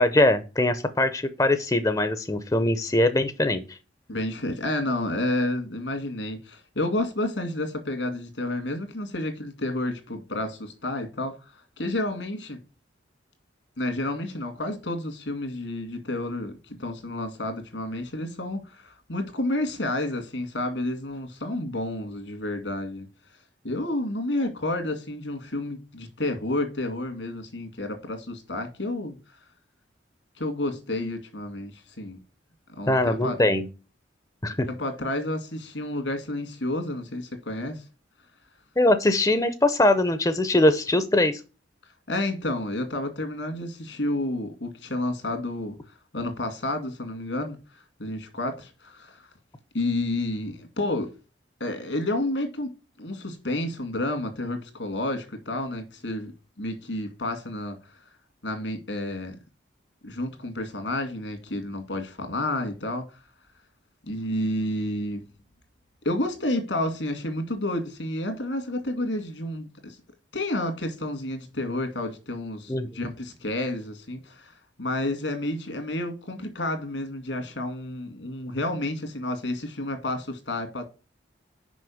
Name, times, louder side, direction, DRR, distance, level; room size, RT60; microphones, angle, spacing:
voice 1, 0.0-3.8 32.9-33.7 34.4-34.7 38.8-41.4 72.7-72.9, left 1 dB, 20° left, 0.6 m, -22 dB
voice 2, 4.1-12.6 13.8-23.1 23.6-29.2 30.4-32.2 32.8-33.4 34.7-37.8 42.1-45.8 46.1-49.3 49.7-51.1 51.6-52.7 53.0-56.3 56.6-57.8 58.4-59.4 60.0-63.1 64.1-65.2 66.0-70.0 70.3-80.8, left 1 dB, 80° left, 2.2 m, -30 dB
6.2 x 5.5 x 7.0 m
head